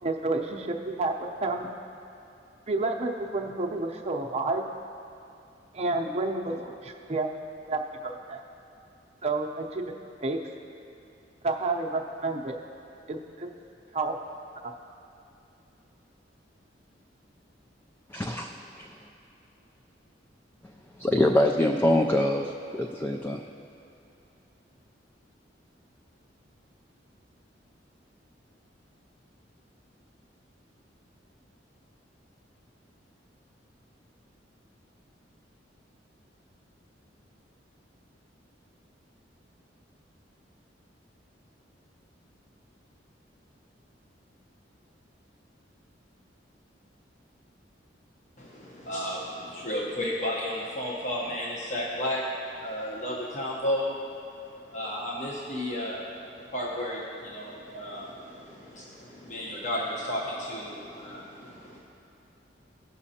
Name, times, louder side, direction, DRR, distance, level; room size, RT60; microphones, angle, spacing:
voice 1, 0.0-1.7 2.7-4.6 5.7-7.3 7.7-8.4 9.2-9.8 10.2-10.4 11.4-12.5 13.1-13.5 13.9-14.2 14.6-14.7, right 2 dB, 35° right, 2 dB, 0.7 m, -30 dB
voice 2, 18.1-18.9 21.0-23.4, left 1 dB, 10° left, 2 dB, 0.3 m, -25 dB
voice 3, 48.4-52.3 52.6-54.0 54.6-61.8, left 1 dB, 40° left, -4 dB, 1.0 m, -33 dB
17.0 x 6.2 x 2.8 m, 2.7 s
head